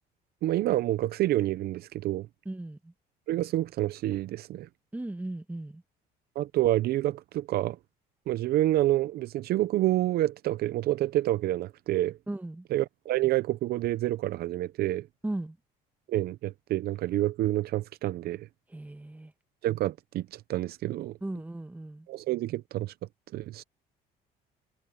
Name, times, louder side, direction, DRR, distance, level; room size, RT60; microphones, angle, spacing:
voice 1, 0.4-2.3 3.3-4.7 6.4-7.8 8.3-12.2 12.7-15.1 16.1-18.5 19.6-21.1 22.1-22.9 23.3-23.6, right 15 dB, 65° right, 0.6 m, -28 dB
voice 2, 2.5-2.9 4.9-5.8 12.3-12.7 15.2-15.6 18.7-19.3 21.2-22.1, right 2 dB, 10° right, 1.7 m, -37 dB
cardioid pair, 110°, 17 cm